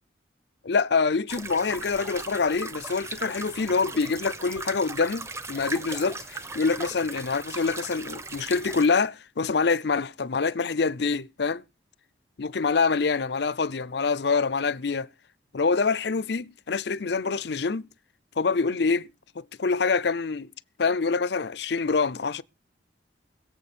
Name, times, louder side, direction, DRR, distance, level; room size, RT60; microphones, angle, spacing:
voice 1, 0.6-11.6 12.4-15.1 15.5-17.9 18.4-19.1 19.4-20.5 20.8-22.4, left 4 dB, 60° left, 0.6 m, -25 dB
sound 1, 1.3-8.9, right 3 dB, 15° right, 0.8 m, -38 dB
22.0 x 7.6 x 4.3 m
head